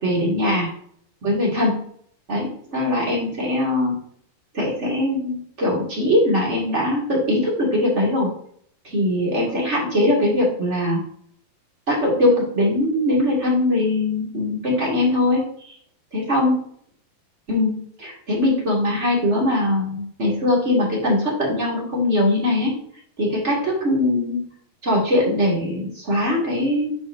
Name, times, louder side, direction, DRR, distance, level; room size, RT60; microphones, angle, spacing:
voice 1, 0.0-0.7 1.2-1.8 2.3-3.9 4.5-8.3 8.8-11.0 11.9-15.7 16.1-16.5 17.5-22.7 23.2-24.4 24.8-27.0, left 1 dB, 30° right, -4 dB, 1.4 m, -21 dB
10.0 x 4.8 x 2.7 m, 0.63 s
omnidirectional pair, 4.7 m